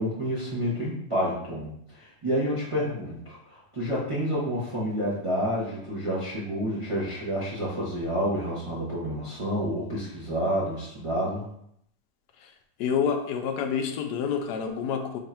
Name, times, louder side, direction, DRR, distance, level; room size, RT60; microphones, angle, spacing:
voice 1, 0.0-11.4, equal, 35° right, -8 dB, 0.5 m, -29 dB
voice 2, 12.8-15.2, left 7 dB, 70° left, 5 dB, 1.0 m, -28 dB
3.6 x 2.5 x 4.3 m, 0.73 s
omnidirectional pair, 2.0 m